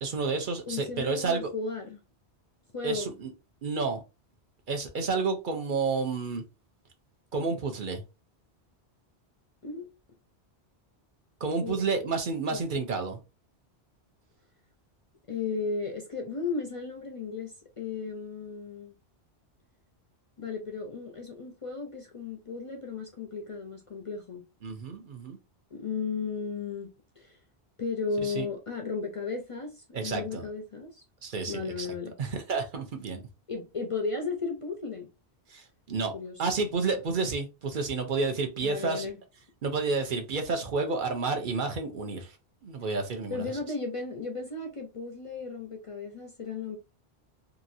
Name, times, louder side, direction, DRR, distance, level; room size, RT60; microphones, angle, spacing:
voice 1, 0.0-1.5 2.8-3.3 3.6-4.0 4.7-6.4 7.3-8.0 11.4-13.2 24.6-25.4 28.2-28.5 29.9-30.5 31.2-31.9 32.2-33.2 35.5-36.1 36.4-39.1 39.6-42.3 42.6-43.5, right 4 dB, 55° right, 0.8 m, -30 dB
voice 2, 0.7-2.0 2.7-3.1 9.6-9.9 11.6-11.8 12.5-12.7 15.3-18.9 20.4-24.4 25.7-27.4 27.8-31.0 31.5-32.1 33.5-35.1 36.1-36.4 38.6-39.2 43.3-46.8, left 4 dB, 45° left, 0.4 m, -35 dB
2.9 x 2.4 x 2.5 m
omnidirectional pair, 1.1 m